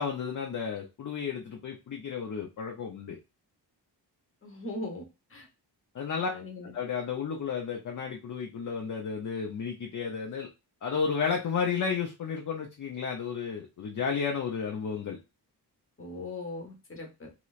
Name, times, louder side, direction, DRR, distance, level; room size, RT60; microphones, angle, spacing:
voice 1, 0.0-3.2 5.9-6.3 6.7-10.5 10.8-15.2, left 6 dB, 45° left, 1 dB, 0.6 m, -32 dB
voice 2, 4.4-5.0 5.3-5.5 6.2-6.7 16.0-17.3, left 2 dB, 30° left, 2 dB, 1.0 m, -39 dB
3.1 x 2.9 x 2.4 m, 0.27 s
wide cardioid pair, 135°, 42 cm